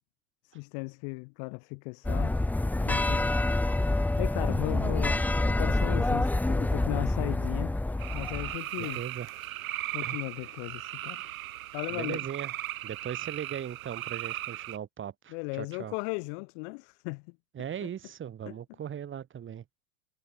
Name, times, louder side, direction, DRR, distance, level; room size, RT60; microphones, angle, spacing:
voice 1, 0.4-2.4 2.8-3.3 4.2-7.8 8.1-9.0 9.9-11.2 11.7-12.2 15.3-17.2 17.8-17.9, left 40 dB or more, 50° left, 1.9 m, -36 dB
sound 1, 2.0-8.6, left 2 dB, 5° left, 0.9 m, -27 dB
voice 2, 4.5-5.0 8.8-9.3 10.0-10.2 11.9-12.6 12.8-15.9 17.5-19.6, right 9 dB, 25° right, 6.4 m, -39 dB
sound 2, 8.0-14.8, right 14 dB, 70° right, 1.6 m, -37 dB
hypercardioid pair, 100°, 43 cm